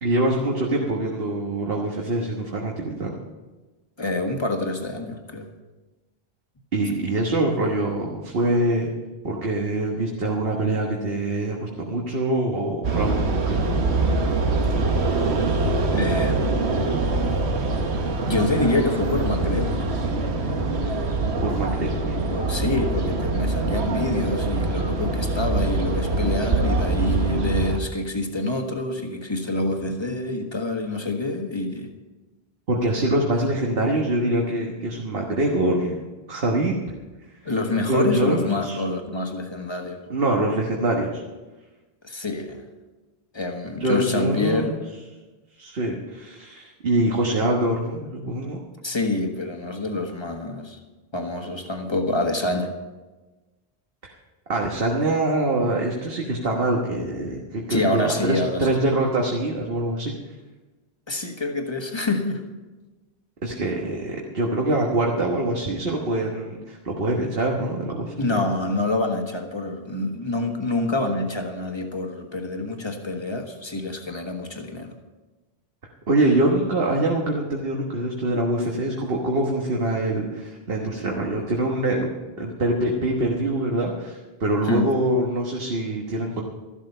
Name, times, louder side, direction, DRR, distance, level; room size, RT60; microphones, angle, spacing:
voice 1, 0.0-3.1 6.7-8.9 9.2-13.8 21.4-22.2 32.7-36.7 37.4-37.5 37.8-38.8 40.1-41.2 43.8-44.8 45.6-48.6 54.0-54.2 54.5-60.1 63.4-68.4 76.1-82.1 82.4-86.4, right 1 dB, 65° right, -1 dB, 1.6 m, -24 dB
voice 2, 4.0-5.5 15.9-16.6 18.3-19.8 22.1-31.9 37.4-40.0 42.0-42.6 43.3-44.7 48.8-50.8 51.1-52.7 57.7-58.7 61.1-62.4 68.2-74.9 84.6-84.9, left 2 dB, 25° left, 4 dB, 1.5 m, -26 dB
sound 1, 12.8-27.8, right 2 dB, 90° right, 1.4 m, -24 dB
13.5 x 12.0 x 5.5 m, 1.2 s
omnidirectional pair, 1.1 m